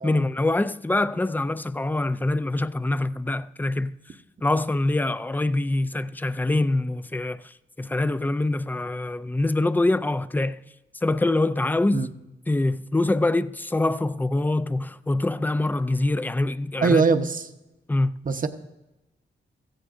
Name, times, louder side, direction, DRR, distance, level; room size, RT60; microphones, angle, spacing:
voice 1, 0.0-3.9 4.4-10.6 11.0-12.1 12.5-17.0 17.9-18.2, left 2 dB, 10° left, 0.4 m, -24 dB
voice 2, 16.8-17.5 18.2-18.5, right 4 dB, 45° right, 0.9 m, -22 dB
16.5 x 15.0 x 2.5 m
wide cardioid pair, 105°, 20 cm